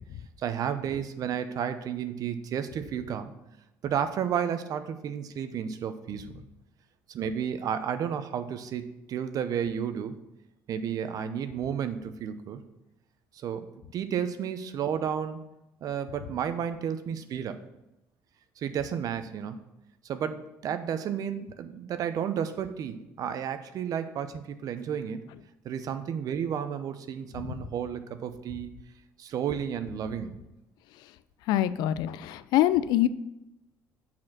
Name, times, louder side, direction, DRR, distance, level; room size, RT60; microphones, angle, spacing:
voice 1, 0.4-3.3 3.8-6.4 7.1-10.2 10.7-12.6 13.3-13.7 13.9-15.4 15.8-17.6 18.6-19.6 20.0-25.2 25.6-28.7 29.2-30.4, right 8 dB, 60° right, 10 dB, 0.6 m, -32 dB
voice 2, 31.5-33.1, left 13 dB, 80° left, 14 dB, 0.4 m, -24 dB
6.4 x 4.3 x 5.9 m, 0.90 s
supercardioid pair, 80°, 7 cm